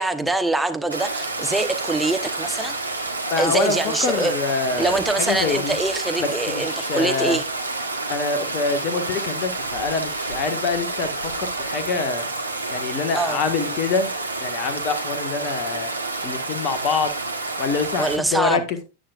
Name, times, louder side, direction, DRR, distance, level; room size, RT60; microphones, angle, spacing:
voice 1, 0.0-2.7 3.3-4.3 4.8-7.4 13.1-13.4 18.0-18.6, right 2 dB, 5° right, 1.1 m, -24 dB
Stream, 0.9-18.2, right 2 dB, 80° right, 1.3 m, -29 dB
voice 2, 3.3-5.8 6.2-7.4 8.1-12.3 12.7-14.1 14.4-15.9 16.2-17.1 17.6-18.8, left 4 dB, 40° left, 1.6 m, -25 dB
13.0 x 8.9 x 2.5 m
figure-of-eight pair, 90°, 0 cm